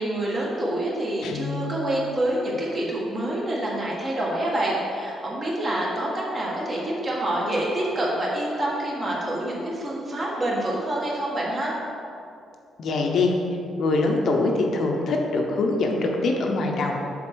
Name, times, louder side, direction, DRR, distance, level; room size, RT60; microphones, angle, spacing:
voice 1, 0.0-11.7, right 1 dB, 30° right, -4 dB, 1.8 m, -27 dB
Guitar, 1.2-2.4, left 3 dB, 75° left, 0.4 m, -34 dB
voice 2, 12.8-13.3 13.8-17.0, left 3 dB, 55° left, 1 dB, 0.8 m, -23 dB
7.6 x 4.0 x 6.2 m, 2.6 s
cardioid pair, 145°, 0 cm